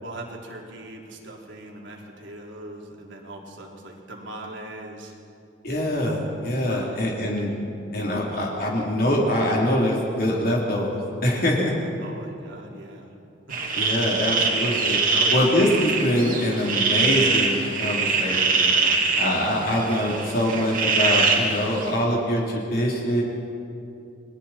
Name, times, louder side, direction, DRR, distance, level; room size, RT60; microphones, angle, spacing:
voice 1, 0.0-5.1 6.7-7.1 12.0-13.1 13.5-13.6 15.1-15.5, right 1 dB, 75° right, -1 dB, 3.4 m, -40 dB
voice 2, 5.6-7.5 7.9-11.7 13.8-15.0 15.3-18.7 19.2-23.2, equal, 50° left, -3 dB, 3.4 m, -24 dB
sound 1, 13.5-21.9, right 4 dB, 45° right, 2.8 m, -23 dB
29.5 x 21.5 x 4.4 m, 2.6 s
head